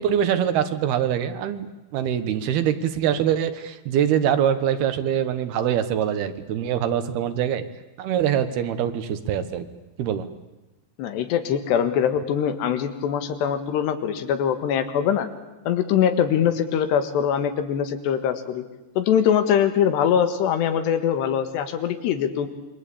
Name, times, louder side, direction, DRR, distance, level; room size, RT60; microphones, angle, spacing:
voice 1, 0.0-7.6 8.0-9.7 10.0-10.3, right 9 dB, 75° right, 11 dB, 3.2 m, -24 dB
voice 2, 11.0-15.3 15.7-18.6 19.0-22.5, left 8 dB, 90° left, 9 dB, 3.9 m, -22 dB
27.0 x 23.5 x 8.6 m, 1.0 s
omnidirectional pair, 4.7 m